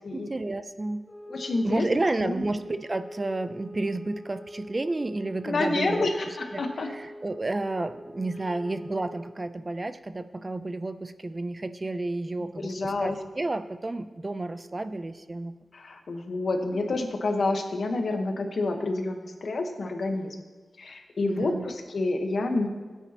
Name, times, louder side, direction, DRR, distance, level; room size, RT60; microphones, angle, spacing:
voice 1, 0.1-1.0 1.6-6.1 6.5-15.5 21.2-21.7, right 2 dB, 30° right, 11 dB, 0.4 m, -31 dB
sound 1, 1.0-9.4, equal, 25° left, 2.2 m, -45 dB
voice 2, 1.3-1.9 2.2-2.4 5.4-6.9 12.6-13.2 15.7-20.4 20.8-22.7, left 2 dB, 65° left, 4 dB, 1.2 m, -28 dB
17.0 x 9.1 x 2.9 m, 1.4 s
wide cardioid pair, 110°, 0 cm